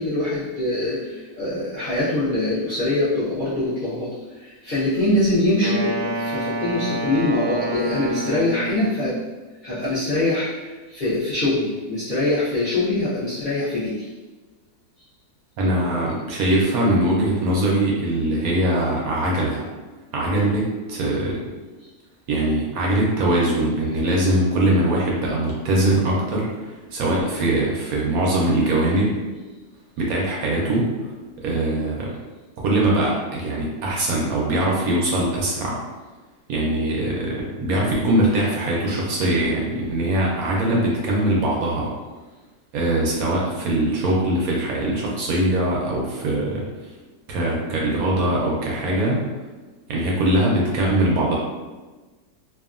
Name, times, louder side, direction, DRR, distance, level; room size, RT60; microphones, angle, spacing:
voice 1, 0.0-9.2 9.6-14.1, left 2 dB, 50° left, -12 dB, 0.6 m, -23 dB
Wind instrument woodwind instrument, 5.6-9.1, right 1 dB, 90° right, 1.2 m, -28 dB
voice 2, 15.6-19.6 20.1-21.3 22.3-29.1 30.0-31.1 31.4-32.1 32.6-35.8 36.5-41.9 42.7-46.6 47.3-49.2 49.9-51.4, right 1 dB, 70° right, -3 dB, 0.9 m, -22 dB
2.7 x 2.4 x 2.4 m, 1.2 s
omnidirectional pair, 1.8 m